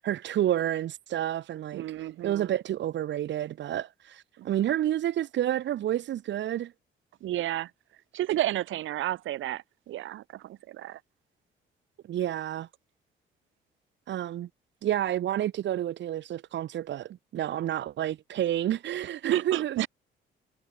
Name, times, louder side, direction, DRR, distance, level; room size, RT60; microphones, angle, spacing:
voice 1, 0.0-6.7 12.1-12.7 14.1-14.5 14.8-19.8, right 12 dB, 65° right, 0.9 m, -29 dB
voice 2, 1.7-2.5 4.4-4.5 7.2-7.7 8.1-11.0 19.3-19.9, right 14 dB, 80° right, 2.2 m, -32 dB
cardioid pair, 90°, 20 cm